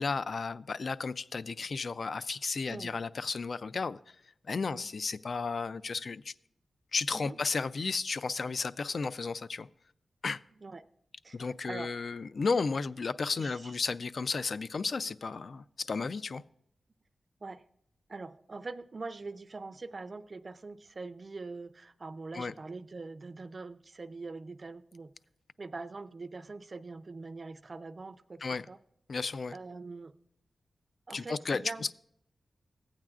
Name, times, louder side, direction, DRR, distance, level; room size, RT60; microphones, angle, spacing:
voice 1, 0.0-4.0 4.5-6.3 6.9-9.7 10.2-10.4 11.3-16.4 22.3-22.5 28.4-28.6 29.1-29.5 31.1-31.6, left 4 dB, 60° left, 0.3 m, -33 dB
voice 2, 2.7-3.0 4.6-4.9 7.1-7.4 10.6-10.8 11.2-11.9 13.3-13.8 17.4-17.6 18.1-25.1 25.6-28.8 29.5-30.1 31.1-31.9, right 3 dB, 45° right, 0.4 m, -43 dB
15.0 x 8.8 x 2.4 m
cardioid pair, 75°, 0 cm